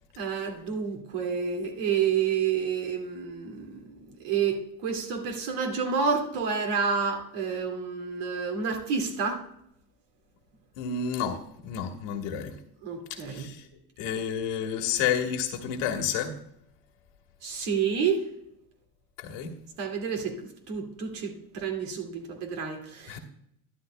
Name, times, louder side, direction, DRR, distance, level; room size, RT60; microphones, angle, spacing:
voice 1, 0.2-4.0 4.2-9.4 12.8-13.5 17.4-18.2 19.8-20.3 20.7-23.2, right 6 dB, 70° right, 2 dB, 2.4 m, -29 dB
voice 2, 10.8-12.5 13.1-13.7 14.0-16.3 19.2-19.6 23.1-23.2, left 8 dB, 70° left, 6 dB, 1.5 m, -30 dB
12.5 x 11.0 x 2.2 m, 0.73 s
supercardioid pair, 90°, 44 cm